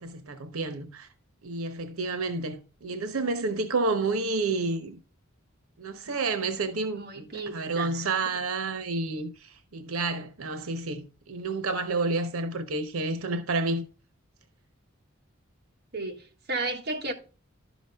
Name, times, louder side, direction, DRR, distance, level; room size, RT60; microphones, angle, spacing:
voice 1, 0.0-1.1 1.4-5.0 5.8-13.8, right 3 dB, 90° right, 1.0 m, -30 dB
voice 2, 6.9-8.4 15.9-17.1, right 2 dB, 50° right, 1.7 m, -34 dB
11.5 x 6.1 x 3.4 m
head